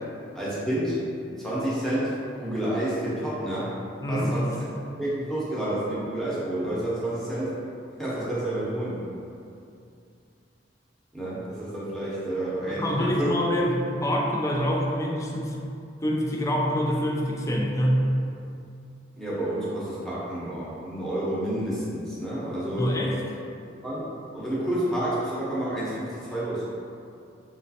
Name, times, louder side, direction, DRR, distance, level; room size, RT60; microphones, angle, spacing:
voice 1, 0.3-1.1 1.4-3.7 4.1-4.5 5.0-7.5 8.0-9.0 11.1-13.3 19.2-23.0 23.8-26.6, right 1 dB, ahead, -9 dB, 0.8 m, -29 dB
voice 2, 4.0-4.3 12.7-15.6 16.0-18.1 22.8-23.2, equal, 20° left, -1 dB, 0.3 m, -25 dB
3.1 x 3.0 x 2.8 m, 2.5 s
head